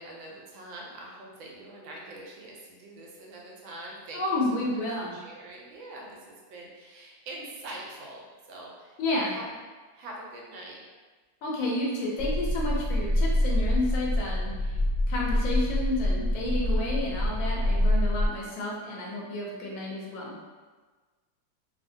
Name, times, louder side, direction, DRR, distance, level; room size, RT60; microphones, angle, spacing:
voice 1, 0.0-4.8 5.1-9.6 9.9-10.8, right 1 dB, 80° right, -2 dB, 1.4 m, -44 dB
voice 2, 4.1-5.1 9.0-9.4 11.4-14.8 15.1-20.4, left 2 dB, 85° left, -4 dB, 1.5 m, -31 dB
sound 1, 12.2-18.3, left 1 dB, 35° left, 1.1 m, -26 dB
3.6 x 2.1 x 2.6 m, 1.4 s
omnidirectional pair, 2.2 m